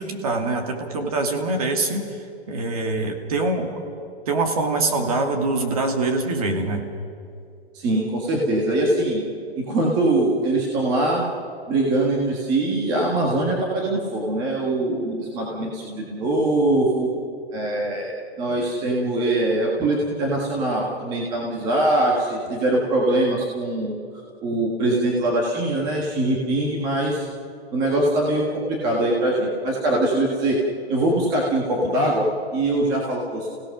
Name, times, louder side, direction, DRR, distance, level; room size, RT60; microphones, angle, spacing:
voice 1, 0.0-2.0 2.5-3.8 4.3-6.8, right 3 dB, 35° right, 4 dB, 2.5 m, -24 dB
voice 2, 7.7-9.2 9.6-11.2 11.7-17.1 17.5-24.0 24.4-27.3 27.7-30.6 30.9-33.5, right 1 dB, 10° right, -2 dB, 1.5 m, -22 dB
29.5 x 17.0 x 6.5 m, 2.4 s
hypercardioid pair, 180°, 32 cm